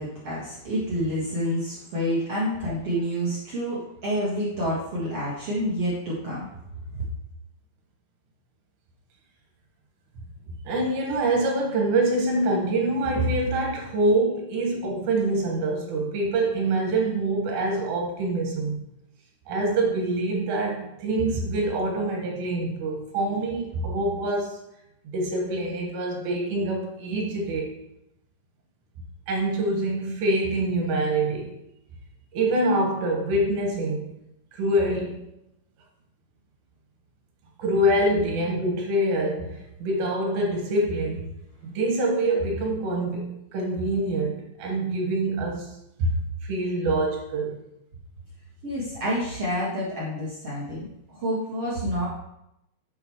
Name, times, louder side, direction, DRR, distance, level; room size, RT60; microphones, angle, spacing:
voice 1, 0.0-6.5 6.9-7.0 48.6-52.1, equal, 55° right, -7 dB, 1.7 m, -28 dB
voice 2, 10.7-18.9 19.5-24.6 25.1-27.7 29.3-31.6 32.3-34.1 34.5-35.2 37.6-41.2 41.6-47.6, right 1 dB, 80° right, 0 dB, 3.7 m, -25 dB
8.2 x 8.0 x 3.1 m, 0.83 s
omnidirectional pair, 5.0 m